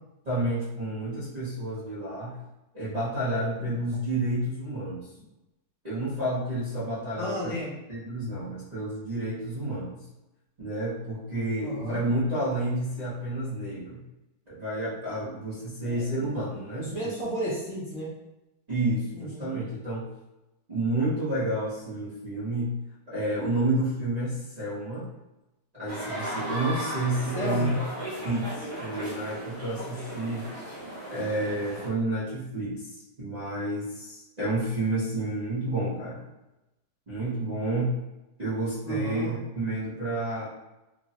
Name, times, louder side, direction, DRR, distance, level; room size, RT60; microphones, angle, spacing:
voice 1, 0.2-2.4 2.7-5.1 5.8-7.5 7.9-10.0 10.6-14.0 14.5-16.9 18.7-20.1 20.7-22.8 23.1-25.1 25.7-27.8 28.2-30.5 31.1-36.2 37.1-38.0 38.4-40.5, right 1 dB, 45° right, -12 dB, 0.5 m, -30 dB
voice 2, 7.2-7.7 11.6-12.0 15.8-16.1 16.8-18.1 19.1-19.5 27.3-27.8 38.9-39.3, equal, 55° left, -7 dB, 0.9 m, -33 dB
sound 1, 25.9-31.9, right 1 dB, 70° right, 1.2 m, -36 dB
3.1 x 2.0 x 2.7 m, 0.98 s
omnidirectional pair, 1.9 m